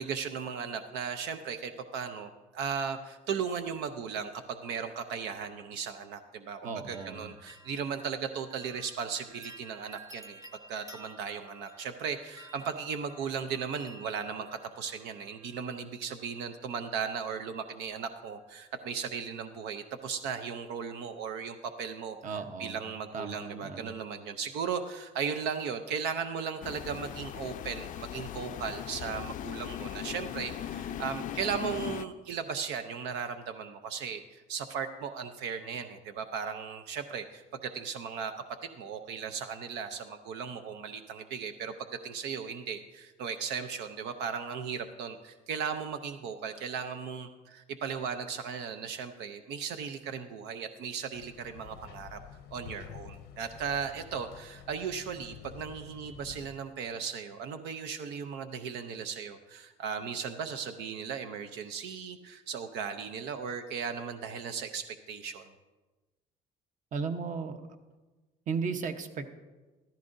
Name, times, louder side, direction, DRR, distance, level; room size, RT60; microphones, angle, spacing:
voice 1, 0.0-10.4 10.7-14.5 14.8-38.3 38.6-52.2 52.5-65.5, right 6 dB, 90° right, 8 dB, 0.6 m, -37 dB
voice 2, 6.6-7.3 22.2-22.8 23.1-23.9 66.9-67.6 68.5-69.3, right 5 dB, 50° right, 7 dB, 0.9 m, -35 dB
sound 1, 6.9-15.8 16.7-17.3 17.5-18.1 18.4-18.5, right 2 dB, 20° right, 0.7 m, -53 dB
sound 2, 26.6-32.0, left 10 dB, 50° left, 0.4 m, -39 dB
sound 3, 51.1-56.5, left 8 dB, 90° left, 0.7 m, -49 dB
14.5 x 13.0 x 2.6 m, 1.2 s
cardioid pair, 110°, 17 cm